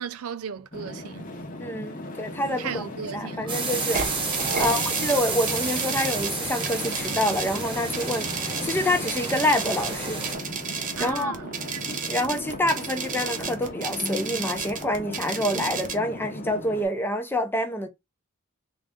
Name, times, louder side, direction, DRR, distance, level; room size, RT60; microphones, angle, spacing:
voice 1, 0.0-1.3 2.6-3.6 4.5-5.1 11.0-11.9 15.5-15.6, right 7 dB, 80° right, 0.4 m, -36 dB
sound 1, 0.7-16.9, left 1 dB, 40° left, 0.9 m, -37 dB
voice 2, 1.6-2.8 3.1-4.0 4.3-10.2 11.0-11.4 12.0-17.9, left 1 dB, 10° left, 0.6 m, -27 dB
sound 2, 3.5-10.3, right 3 dB, 25° right, 1.2 m, -31 dB
sound 3, 3.9-15.9, right 5 dB, 40° right, 0.8 m, -33 dB
3.7 x 2.5 x 3.5 m
head